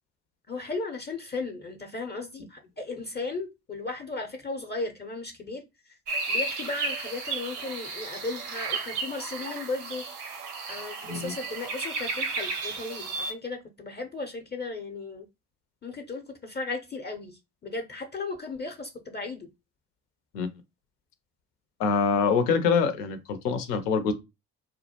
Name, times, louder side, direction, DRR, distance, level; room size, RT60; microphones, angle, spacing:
voice 1, 0.5-5.6 6.3-10.0 10.7-15.2 15.8-19.5, left 3 dB, 25° left, 0.6 m, -36 dB
sound 1, 6.1-13.3, right 3 dB, 85° right, 0.7 m, -33 dB
voice 2, 21.8-24.1, left 5 dB, 85° left, 0.6 m, -25 dB
2.2 x 2.0 x 2.8 m
hypercardioid pair, 55°, 45 cm